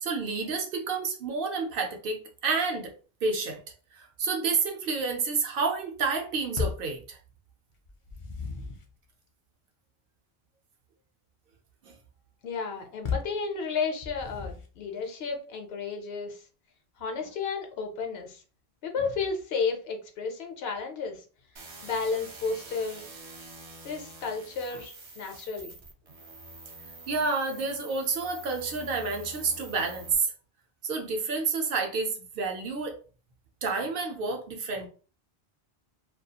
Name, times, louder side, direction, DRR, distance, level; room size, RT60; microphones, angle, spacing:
voice 1, 0.0-2.9 3.2-3.6 3.9-7.2 11.8-11.9 27.1-30.3 30.8-33.0 33.6-34.9, right 4 dB, 65° right, 3 dB, 0.7 m, -29 dB
sound 1, 6.6-7.0 7.9-8.9 13.0-13.4 14.0-14.8, left 5 dB, 50° left, 0.4 m, -34 dB
voice 2, 12.4-16.4 17.0-18.4 18.8-21.2 21.8-23.1 23.8-25.8, left 5 dB, 75° left, 4 dB, 0.8 m, -32 dB
sound 2, 21.6-30.2, right 2 dB, 45° right, 0.3 m, -46 dB
2.3 x 2.3 x 2.7 m, 0.38 s
omnidirectional pair, 1.1 m